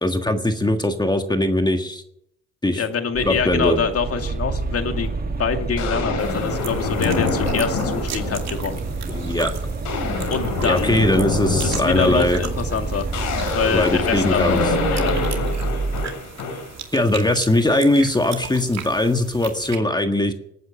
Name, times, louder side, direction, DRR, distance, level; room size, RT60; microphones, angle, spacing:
voice 1, 0.0-2.0 2.6-2.8 3.2-3.8 9.1-9.5 10.6-12.4 13.7-14.6 16.9-20.3, left 1 dB, 15° left, 6 dB, 1.5 m, -20 dB
voice 2, 2.7-5.1 5.4-8.8 10.3-11.0 11.6-13.1 13.5-15.2, left 6 dB, 50° left, 6 dB, 2.3 m, -25 dB
sound 1, 3.1-16.1, right 3 dB, 30° right, 2.0 m, -28 dB
sound 2, 4.9-5.1 5.8-8.7 9.1-9.4 9.7-16.8, left 3 dB, 80° left, 5.0 m, -26 dB
sound 3, 6.2-19.8, right 7 dB, 60° right, 2.5 m, -38 dB
18.5 x 9.5 x 7.4 m, 0.76 s
cardioid pair, 90°, 30 cm